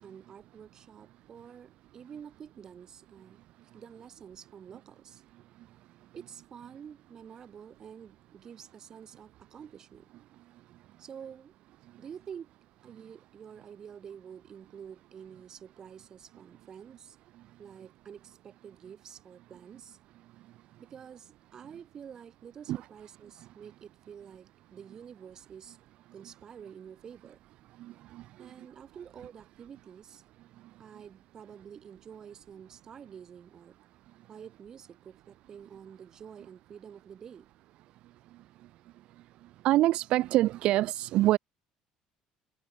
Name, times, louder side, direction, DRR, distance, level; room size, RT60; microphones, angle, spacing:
voice 1, 0.0-3.4 3.7-5.2 6.1-10.1 11.0-11.5 12.0-12.5 12.8-17.2 17.6-20.0 20.8-25.8 26.1-27.4 28.4-30.2 30.8-33.7 34.3-37.5, right 8 dB, 30° right, 7.2 m, -48 dB
voice 2, 39.6-41.4, right 15 dB, 55° right, 0.4 m, -24 dB
cardioid pair, 155°, 2 cm